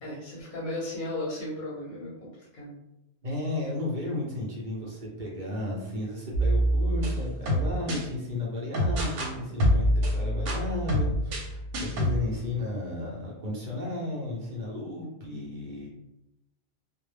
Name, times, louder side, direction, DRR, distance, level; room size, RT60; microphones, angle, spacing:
voice 1, 0.0-2.7, left 1 dB, 50° left, -5 dB, 0.7 m, -35 dB
voice 2, 3.2-15.9, left 2 dB, 50° right, -4 dB, 0.6 m, -34 dB
sound 1, 6.3-8.0 8.7-9.3 9.6-12.2, equal, 85° right, 0.9 m, -26 dB
2.1 x 2.0 x 3.2 m, 0.90 s
omnidirectional pair, 1.2 m